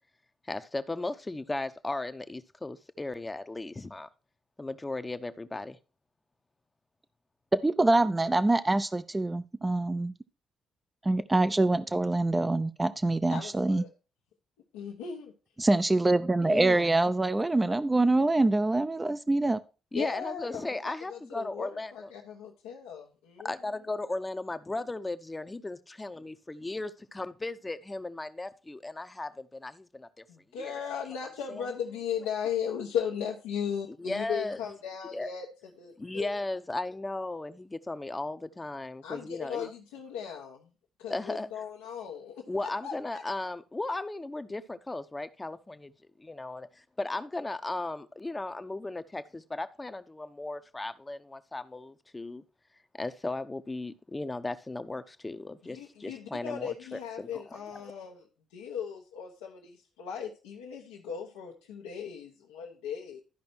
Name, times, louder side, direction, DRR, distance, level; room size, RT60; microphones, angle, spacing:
voice 1, 0.5-4.1 4.6-5.8 16.4-16.9 19.9-22.1 23.4-30.2 30.6-30.8 31.5-31.7 33.9-34.6 35.1-35.3 36.0-39.7 41.1-41.5 42.5-45.9 46.2-52.4 52.9-57.6, left 2 dB, 20° left, 0.8 m, -36 dB
voice 2, 7.5-10.1 11.0-13.8 15.6-19.6, right 2 dB, 20° right, 0.6 m, -25 dB
voice 3, 13.3-13.9 14.7-15.3 16.5-16.8 19.9-23.5 30.3-35.5 35.8-35.9 36.2-36.3 39.0-40.7 41.0-43.2 55.6-58.2 58.5-63.2, left 8 dB, 80° left, 1.1 m, -37 dB
12.5 x 5.2 x 4.5 m
hypercardioid pair, 45°, 0 cm